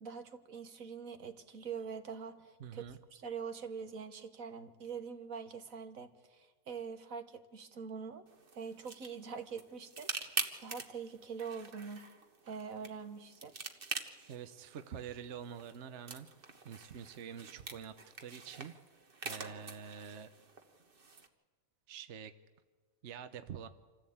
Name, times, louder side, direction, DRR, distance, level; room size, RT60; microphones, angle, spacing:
voice 1, 0.0-2.8 3.1-8.3 8.5-12.0 12.4-13.5, right 6 dB, 75° right, 8 dB, 1.7 m, -44 dB
voice 2, 2.6-3.0 14.3-16.3 16.6-17.9 18.2-18.7 19.2-20.3 21.9-22.3 23.0-23.7, right 8 dB, 60° right, 10 dB, 1.1 m, -46 dB
sound 1, 8.3-21.3, right 4 dB, 40° right, 1.5 m, -45 dB
26.5 x 15.0 x 8.7 m, 1.4 s
omnidirectional pair, 1.4 m